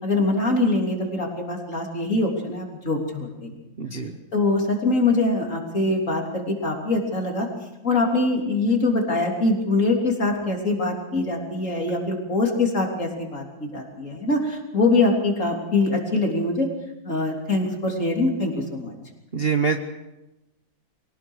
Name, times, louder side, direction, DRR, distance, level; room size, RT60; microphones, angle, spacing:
voice 1, 0.0-3.5 4.3-7.5 7.8-16.7 17.0-18.9, left 2 dB, 40° left, 1 dB, 3.8 m, -23 dB
voice 2, 3.8-4.1 19.3-19.8, right 6 dB, 40° right, 5 dB, 1.1 m, -24 dB
24.0 x 18.0 x 6.4 m, 0.96 s
omnidirectional pair, 2.0 m